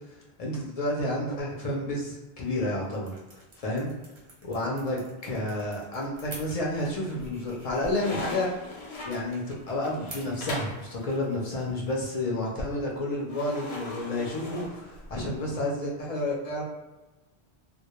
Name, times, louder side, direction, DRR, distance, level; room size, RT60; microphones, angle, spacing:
voice 1, 0.4-3.2 3.6-3.9 4.4-8.5 9.0-16.6, left 1 dB, 50° left, -3 dB, 0.5 m, -30 dB
sound 1, 2.3-13.8, right 2 dB, 45° right, 0.8 m, -52 dB
sound 2, 6.2-6.8 7.2-10.8 13.3-15.3, left 2 dB, 80° left, 0.9 m, -39 dB
2.2 x 2.0 x 2.9 m, 1.1 s
omnidirectional pair, 1.1 m